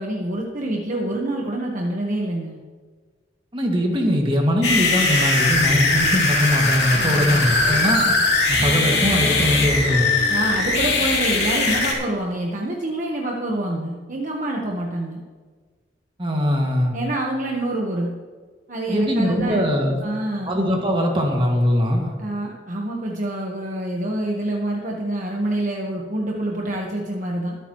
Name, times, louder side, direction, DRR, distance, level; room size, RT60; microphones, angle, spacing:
voice 1, 0.0-2.6 6.9-7.4 10.3-15.2 16.9-18.1 18.7-19.6 20.0-20.6 22.2-27.6, right 1 dB, 45° right, -2 dB, 1.3 m, -26 dB
voice 2, 3.5-8.1 8.5-10.1 16.2-16.9 18.9-20.0 20.5-22.2, equal, 30° right, 0 dB, 2.1 m, -21 dB
sound 1, 4.6-11.9, left 3 dB, 70° left, 3.0 m, -20 dB
23.0 x 9.1 x 3.1 m, 1.5 s
head